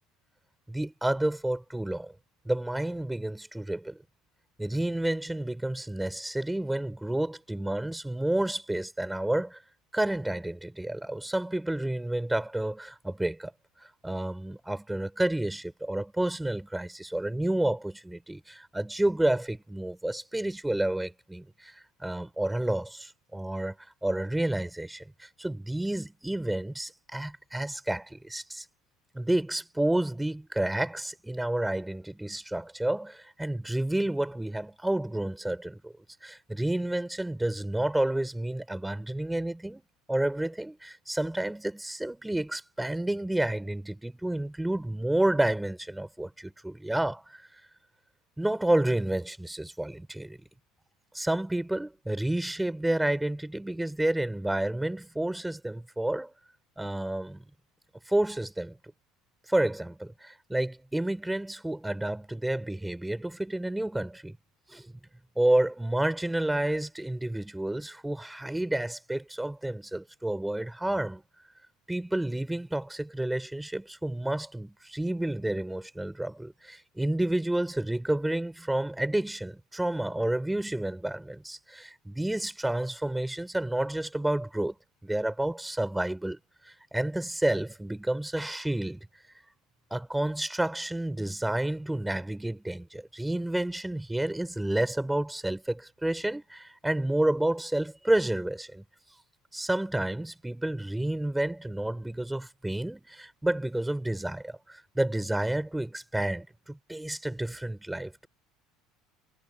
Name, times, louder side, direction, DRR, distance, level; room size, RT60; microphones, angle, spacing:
voice 1, 0.7-2.1 2.4-4.0 4.6-9.6 9.9-13.5 14.0-23.7 24.0-28.6 29.1-35.9 36.2-39.8 40.1-47.4 48.4-50.4 51.1-56.3 56.8-57.4 58.1-58.8 59.5-64.4 64.7-64.9 65.3-71.2 71.9-84.7 85.0-86.4 86.6-89.0 89.9-98.8 99.5-108.3, right 1 dB, 5° right, 6.8 m, -30 dB
supercardioid pair, 110°, 0 cm